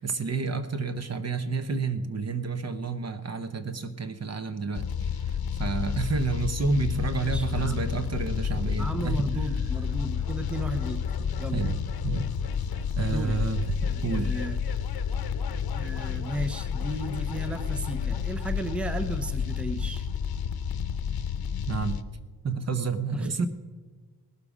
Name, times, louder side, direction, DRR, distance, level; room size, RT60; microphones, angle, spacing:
voice 1, 0.0-9.3 11.5-11.8 12.0-12.3 12.9-13.6 14.0-14.3 21.7-22.0 22.4-23.5, right 4 dB, 45° right, 10 dB, 0.9 m, -30 dB
sound 1, 4.7-22.0, left 7 dB, 80° left, 0.8 m, -30 dB
voice 2, 7.2-8.0 8.8-11.0 11.4-11.7 13.1-13.4 13.9-14.6 15.7-20.1 23.1-23.3, right 1 dB, 5° right, 8 dB, 0.7 m, -34 dB
19.0 x 12.5 x 5.0 m, 1.4 s
wide cardioid pair, 165°, 37 cm